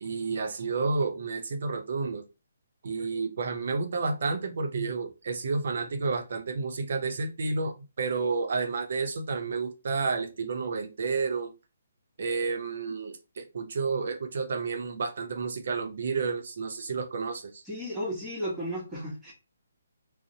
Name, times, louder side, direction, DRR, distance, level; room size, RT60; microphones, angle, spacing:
voice 1, 0.0-2.2 2.8-11.5 12.2-17.6, right 4 dB, 60° right, 5 dB, 0.5 m, -30 dB
voice 2, 17.6-19.3, equal, 5° right, -7 dB, 1.1 m, -34 dB
2.6 x 2.0 x 2.6 m, 0.28 s
hypercardioid pair, 150°, 0 cm